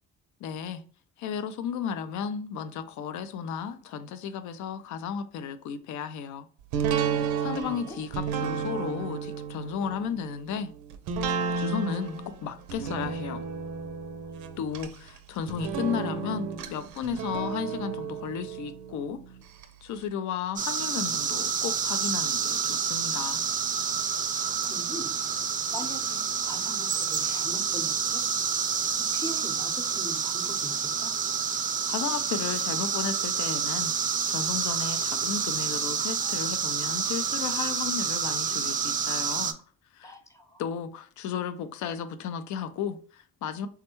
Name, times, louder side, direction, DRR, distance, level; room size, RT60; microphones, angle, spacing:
voice 1, 0.4-0.8 1.2-6.5 6.8-10.7 11.6-13.4 14.6-19.2 19.8-23.4 31.9-39.5 39.9-40.1 40.6-43.7, left 7 dB, 75° left, 0.4 m, -34 dB
sound 1, 6.7-19.7 20.0-20.1, right 6 dB, 85° right, 0.5 m, -33 dB
voice 2, 7.5-8.0 24.3-25.1 25.7-28.3 29.1-31.2 40.0-40.6, left 1 dB, 10° left, 0.6 m, -41 dB
sound 2, 20.6-39.5, right 6 dB, 30° right, 0.4 m, -28 dB
3.4 x 2.2 x 2.9 m
cardioid pair, 90°, 30 cm